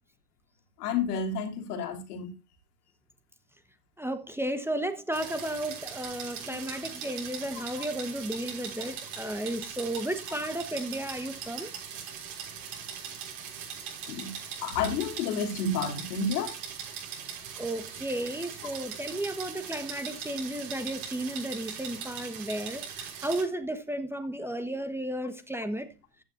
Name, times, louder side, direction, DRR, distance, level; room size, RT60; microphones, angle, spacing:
voice 1, 0.8-2.3 6.5-6.7 14.1-14.3 14.6-16.5, left 4 dB, 70° left, 3.1 m, -30 dB
voice 2, 4.0-11.7 17.6-25.9, right 1 dB, 5° right, 1.3 m, -33 dB
sound 1, 5.1-23.4, right 7 dB, 65° right, 6.1 m, -40 dB
15.0 x 9.5 x 2.6 m
hypercardioid pair, 80°, 47 cm